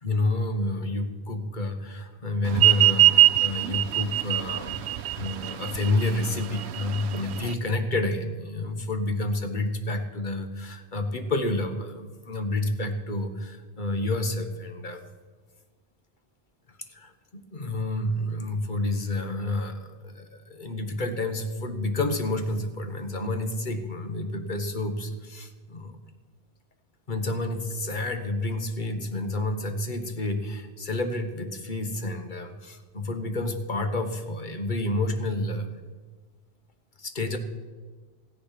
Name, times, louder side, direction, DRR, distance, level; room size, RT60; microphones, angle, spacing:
voice 1, 0.0-4.8 5.2-15.1 16.7-26.0 27.1-35.8 37.0-37.4, left 2 dB, 50° left, 7 dB, 1.4 m, -29 dB
sound 1, 2.5-7.5, right 14 dB, 85° right, 0.9 m, -21 dB
15.0 x 10.0 x 5.9 m, 1.4 s
omnidirectional pair, 1.1 m